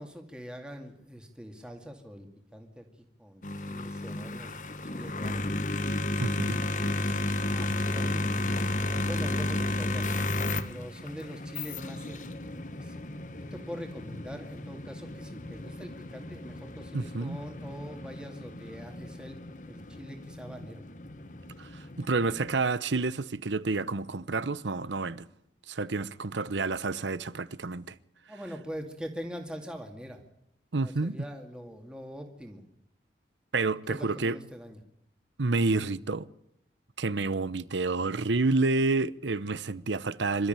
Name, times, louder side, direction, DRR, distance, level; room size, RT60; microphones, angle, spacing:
voice 1, 0.0-2.3 2.5-2.8 3.2-5.6 6.6-10.1 10.6-13.0 13.4-19.4 19.6-20.8 28.3-30.2 30.8-32.6 33.9-34.8, equal, 5° right, 2.2 m, -43 dB
sound 1, 3.4-22.5, left 2 dB, 45° left, 1.3 m, -33 dB
voice 2, 6.2-6.6 16.9-17.4 21.6-25.3 25.7-28.0 30.7-31.2 33.5-34.4 35.4-36.3 37.0-40.5, right 3 dB, 90° right, 0.9 m, -29 dB
27.0 x 13.5 x 9.0 m
head